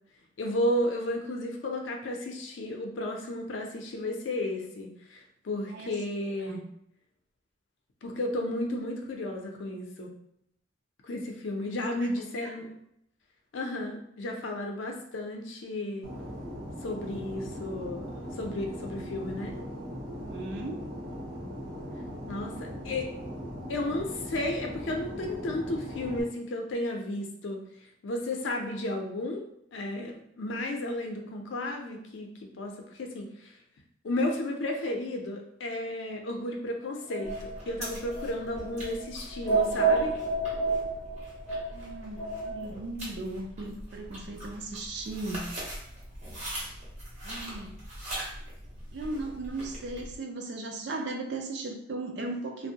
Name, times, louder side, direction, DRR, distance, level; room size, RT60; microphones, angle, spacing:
voice 1, 0.4-6.6 8.0-10.1 11.0-12.7 13.5-16.1 16.8-19.5 22.3-23.1 23.7-27.6 28.0-29.4 29.7-33.5 34.0-40.2, left 1 dB, 85° left, 2 dB, 0.5 m, -33 dB
Fixed-wing aircraft airplane, 16.0-26.2, equal, 80° right, 0.8 m, -39 dB
voice 2, 20.2-20.8 41.7-45.5 47.2-47.8 48.9-52.7, right 2 dB, 65° right, 3 dB, 0.4 m, -37 dB
sound 1, 37.1-42.6, right 4 dB, 20° left, 0.5 m, -30 dB
sound 2, 37.2-50.2, right 1 dB, 35° right, 0.7 m, -42 dB
2.5 x 2.0 x 2.7 m, 0.74 s
head